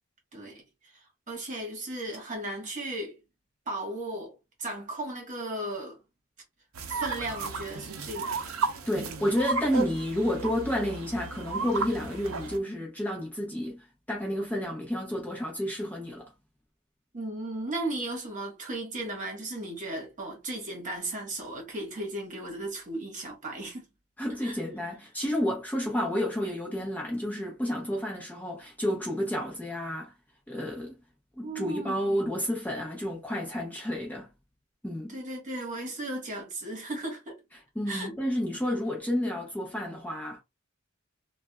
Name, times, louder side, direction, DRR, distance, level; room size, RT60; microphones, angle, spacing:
voice 1, 0.3-3.2 3.7-6.0 6.9-8.4 17.1-23.8 24.4-24.6 31.4-32.2 35.1-37.4 37.9-38.1, right 1 dB, 35° right, 1.3 m, -36 dB
sound 1, 6.7-12.6, right 4 dB, 85° right, 0.6 m, -34 dB
voice 2, 8.9-16.3 24.2-30.1 30.5-31.0 31.4-34.3 34.8-35.2 37.8-40.4, equal, 10° left, 0.8 m, -30 dB
3.3 x 2.4 x 2.3 m
head